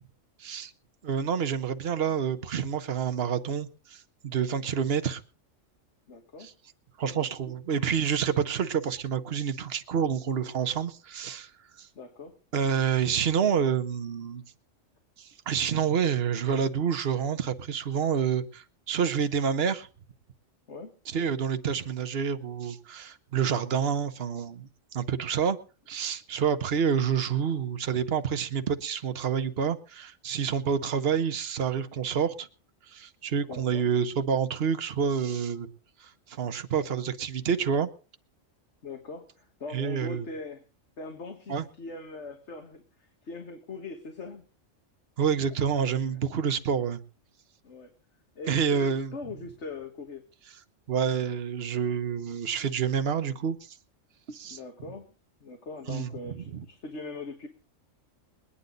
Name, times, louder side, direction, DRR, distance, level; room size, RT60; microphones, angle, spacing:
voice 1, 0.4-0.7 1.0-5.2 6.4-6.5 7.0-11.5 11.8-11.9 12.5-14.4 15.2-19.9 21.1-25.6 25.9-32.5 32.8-35.7 36.0-37.9 39.7-40.3 41.5-41.6 45.2-47.0 48.5-49.1 50.9-53.8 54.3-54.6 55.9-56.6, right 7 dB, 55° right, 1.2 m, -28 dB
voice 2, 6.1-6.5 7.0-7.2 7.5-7.6 12.0-12.4 20.7-20.9 33.5-33.8 38.8-40.6 41.0-44.4 45.9-46.2 47.6-47.9 48.4-50.3 54.4-55.1 55.4-57.5, left 3 dB, 60° left, 1.8 m, -41 dB
22.0 x 9.9 x 3.9 m
omnidirectional pair, 1.3 m